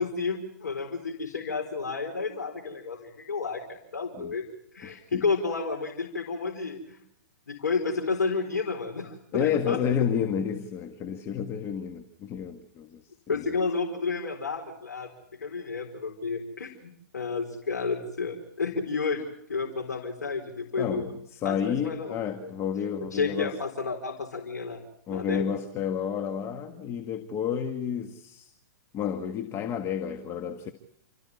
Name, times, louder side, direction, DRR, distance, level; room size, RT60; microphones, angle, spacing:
voice 1, 0.0-4.4 4.7-7.0 7.5-9.8 13.3-15.1 15.4-19.2 19.5-21.1 21.4-22.5 23.1-24.8 25.1-25.4, left 4 dB, 90° left, 4.3 m, -31 dB
voice 2, 4.8-5.2 9.3-13.0 13.3-13.5 20.8-23.6 25.1-28.5 28.9-30.7, left 8 dB, 30° left, 1.7 m, -30 dB
29.5 x 14.5 x 9.6 m
hypercardioid pair, 130°, 9 cm